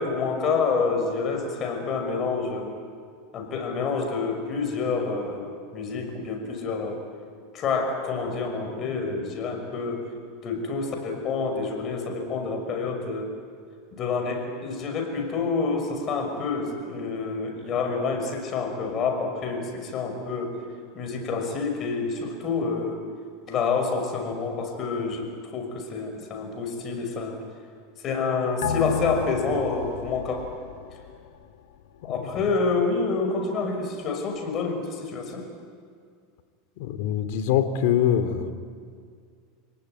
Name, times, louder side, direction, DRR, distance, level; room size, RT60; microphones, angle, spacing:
voice 1, 0.0-2.7 3.3-7.0 7.5-10.0 10.4-13.3 14.0-20.5 20.9-23.0 23.5-27.4 28.0-30.5 32.0-35.5, left 4 dB, 35° left, 4 dB, 6.1 m, -28 dB
sound 1, 28.6-31.5 31.9-32.0, left 8 dB, 80° left, 1.9 m, -32 dB
voice 2, 36.8-38.5, left 9 dB, 65° left, 10 dB, 2.5 m, -24 dB
30.0 x 19.0 x 9.5 m, 2.2 s
supercardioid pair, 125°, 0 cm